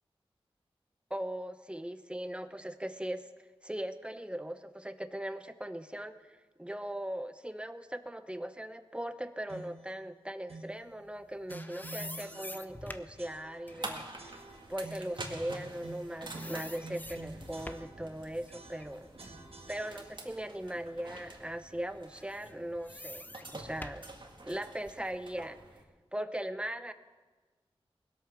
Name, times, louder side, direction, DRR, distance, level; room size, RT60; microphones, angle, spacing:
voice 1, 1.1-3.3 3.6-6.1 6.6-14.3 14.7-19.1 19.7-24.1 24.4-25.6 26.1-26.9, right 1 dB, 10° right, 10 dB, 0.9 m, -39 dB
sound 1, 9.5-9.9 10.5-10.8 11.5-12.9 13.2-13.8 14.2-15.2 15.8-18.2 18.5-20.4, right 2 dB, 70° right, 1.5 m, -49 dB
sound 2, 11.1-16.0 16.3-18.0 18.5-20.4 20.9-21.0 22.1-25.1, left 1 dB, 15° left, 0.8 m, -48 dB
sound 3, 13.7-25.8, right 2 dB, 50° right, 1.9 m, -47 dB
19.5 x 8.5 x 6.1 m, 1.4 s
wide cardioid pair, 55°, 10 cm